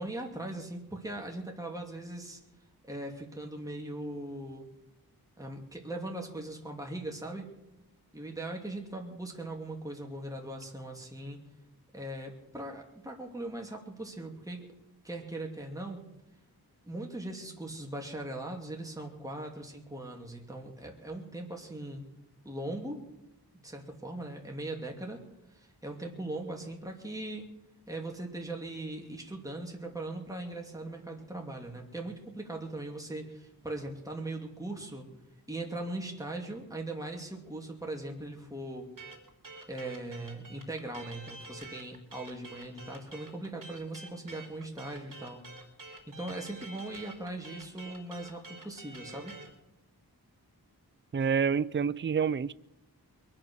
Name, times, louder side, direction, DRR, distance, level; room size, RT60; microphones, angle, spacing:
voice 1, 0.0-2.4 2.9-4.7 5.4-7.5 8.1-11.4 11.9-14.7 15.0-16.1 16.9-22.0 22.4-23.0 23.5-25.2 25.5-27.5 27.9-35.1 35.5-38.9 39.7-45.4 46.1-49.4, right 2 dB, 10° right, 2.5 m, -40 dB
sound 1, 39.0-49.5, right 2 dB, 55° right, 3.4 m, -48 dB
voice 2, 51.1-52.5, right 6 dB, 30° right, 0.5 m, -28 dB
22.5 x 8.9 x 6.3 m
wide cardioid pair, 65°, 38 cm